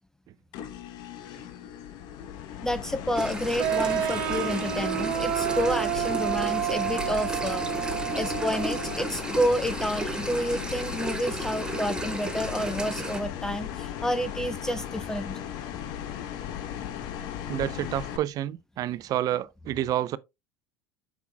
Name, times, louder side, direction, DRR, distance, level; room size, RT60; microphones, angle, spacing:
sound 1, 0.5-18.2, left 10 dB, 60° left, 0.9 m, -37 dB
voice 1, 2.6-15.4, equal, 5° left, 0.5 m, -30 dB
sound 2, 3.1-13.2, right 2 dB, 10° right, 1.2 m, -35 dB
sound 3, 3.6-9.1, right 11 dB, 65° right, 0.9 m, -29 dB
voice 2, 17.5-20.2, right 12 dB, 50° right, 0.5 m, -29 dB
8.1 x 6.1 x 2.2 m
hypercardioid pair, 80°, 8 cm